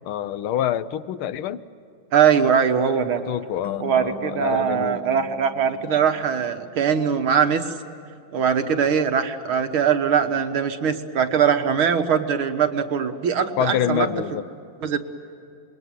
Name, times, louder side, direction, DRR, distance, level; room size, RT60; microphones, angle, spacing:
voice 1, 0.0-1.6 3.3-5.0 13.6-14.5, left 11 dB, 80° left, 13 dB, 1.7 m, -26 dB
voice 2, 2.1-3.2 3.8-7.7 8.3-14.1 14.8-15.0, right 7 dB, 75° right, 6 dB, 2.2 m, -21 dB
sound 1, 3.6-6.8, equal, 55° left, 3.6 m, -41 dB
27.0 x 21.5 x 9.1 m, 2.6 s
omnidirectional pair, 2.3 m